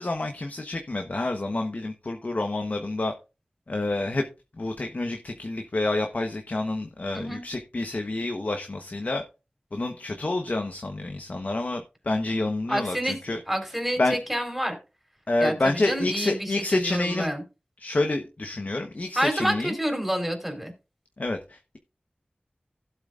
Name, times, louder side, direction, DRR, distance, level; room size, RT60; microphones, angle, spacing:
voice 1, 0.0-3.1 3.7-4.3 4.6-9.2 9.7-14.2 15.3-17.3 17.8-19.8 21.2-21.8, left 2 dB, 55° left, 4 dB, 1.2 m, -28 dB
voice 2, 7.1-7.4 12.7-14.8 15.4-17.4 19.1-20.7, equal, 5° right, 4 dB, 4.0 m, -28 dB
16.0 x 8.0 x 2.5 m, 0.29 s
wide cardioid pair, 65°, 3 cm